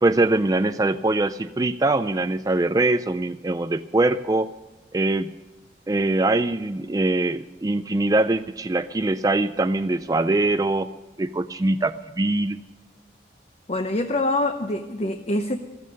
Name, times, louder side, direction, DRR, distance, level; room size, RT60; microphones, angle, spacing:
voice 1, 0.0-4.5 4.9-5.3 5.9-10.9 11.2-12.6, right 2 dB, 20° right, 9 dB, 0.4 m, -22 dB
voice 2, 13.7-15.6, left 2 dB, 35° left, 6 dB, 0.8 m, -25 dB
15.0 x 14.0 x 5.3 m, 1.2 s
head